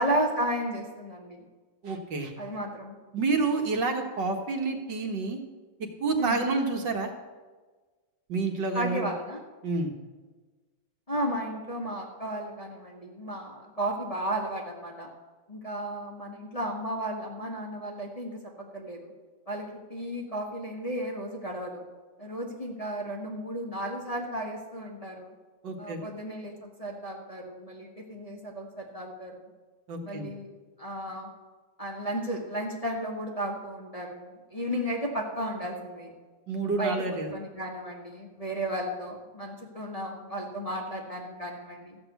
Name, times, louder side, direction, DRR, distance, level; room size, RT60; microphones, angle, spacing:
voice 1, 0.0-1.4 2.4-3.0 6.2-6.4 8.7-9.4 11.1-15.1 15.5-19.1 19.5-21.8 22.2-25.3 25.8-29.5 30.0-30.5 30.8-31.3 31.8-36.1 36.6-42.0, right 1 dB, 20° left, -2 dB, 1.4 m, -34 dB
voice 2, 1.8-2.3 3.1-5.4 6.0-7.1 8.3-9.1 9.6-9.9 25.6-26.0 29.9-30.3 36.5-37.3, right 3 dB, 65° right, 3 dB, 1.9 m, -28 dB
14.0 x 6.1 x 8.1 m, 1.3 s
omnidirectional pair, 2.1 m